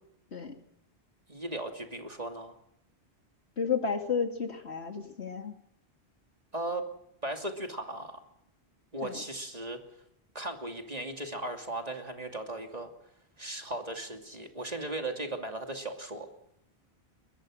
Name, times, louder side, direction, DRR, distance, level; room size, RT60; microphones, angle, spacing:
voice 1, 1.3-2.5 6.5-6.9 7.2-8.2 8.9-9.8 10.3-12.9 13.4-16.3, right 1 dB, 35° right, 4 dB, 2.7 m, -37 dB
voice 2, 3.6-5.6 9.0-9.2, left 6 dB, 75° left, 5 dB, 2.8 m, -32 dB
23.0 x 21.5 x 6.4 m, 0.78 s
omnidirectional pair, 1.1 m